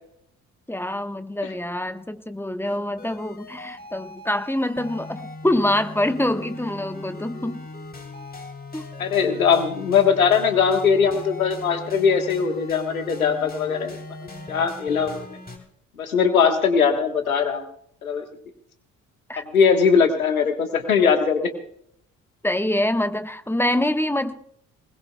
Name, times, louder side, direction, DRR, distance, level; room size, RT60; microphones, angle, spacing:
voice 1, 0.7-7.7 8.7-8.8 19.3-19.4 22.4-24.3, left 1 dB, 5° left, 1.2 m, -25 dB
sound 1, 2.6-15.6, left 2 dB, 20° left, 3.5 m, -39 dB
voice 2, 9.0-14.0 14.5-15.4 16.0-17.6 18.0-18.2 19.4-21.4, left 6 dB, 90° left, 1.4 m, -20 dB
21.0 x 20.5 x 2.3 m
figure-of-eight pair, 45°, 41 cm